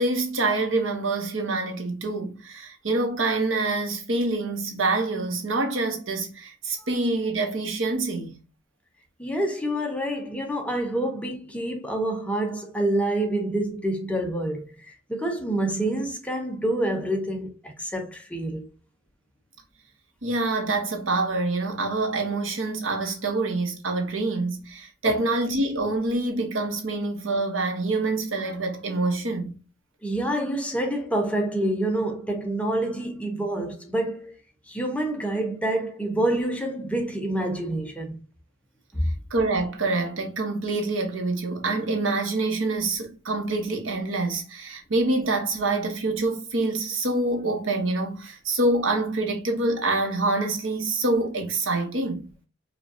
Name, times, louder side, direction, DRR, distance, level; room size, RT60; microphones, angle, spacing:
voice 1, 0.0-8.4 20.2-29.6 39.3-52.3, right 2 dB, 80° right, 1.0 m, -26 dB
voice 2, 9.2-18.6 25.1-25.2 30.0-34.3 34.7-38.1 38.9-39.1, right 1 dB, 5° left, 0.6 m, -27 dB
5.0 x 2.3 x 2.7 m
head